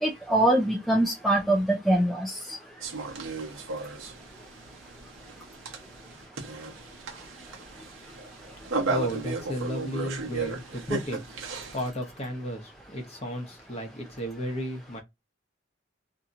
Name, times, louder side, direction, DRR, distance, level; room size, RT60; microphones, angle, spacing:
voice 1, 0.0-2.3, right 1 dB, ahead, 0.4 m, -23 dB
sound 1, 2.8-11.9, right 3 dB, 85° right, 0.8 m, -35 dB
voice 2, 8.9-11.2 11.7-15.0, equal, 30° left, 0.9 m, -33 dB
2.8 x 2.7 x 2.4 m
head